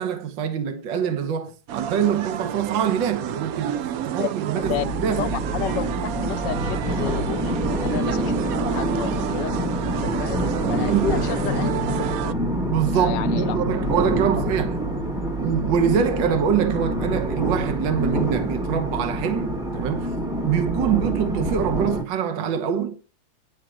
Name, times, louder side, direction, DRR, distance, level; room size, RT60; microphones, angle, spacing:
voice 1, 0.0-5.3 10.8-11.1 12.7-14.8 15.3-20.1 20.4-23.1, right 8 dB, 65° right, 1.8 m, -24 dB
sound 1, 1.7-12.3, right 10 dB, 90° right, 0.7 m, -30 dB
voice 2, 4.5-4.8 5.2-9.6 9.9-12.2 12.9-13.8 14.1-14.5, left 12 dB, 70° left, 1.2 m, -32 dB
sound 2, 4.6-22.0, right 1 dB, ahead, 1.6 m, -26 dB
10.5 x 5.1 x 6.2 m
omnidirectional pair, 2.2 m